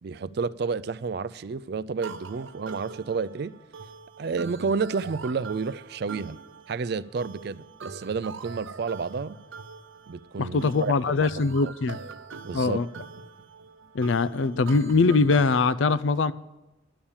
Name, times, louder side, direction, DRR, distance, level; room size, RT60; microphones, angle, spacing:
voice 1, 0.0-3.5 4.2-6.4 6.7-9.4 10.1-11.1 11.6-11.7 12.4-12.9, right 4 dB, 55° right, 0.4 m, -30 dB
sound 1, 2.0-15.7, right 4 dB, 80° right, 0.7 m, -43 dB
voice 2, 10.4-12.0 12.5-12.9 13.9-16.3, left 4 dB, 75° left, 0.5 m, -22 dB
11.0 x 7.2 x 8.7 m
head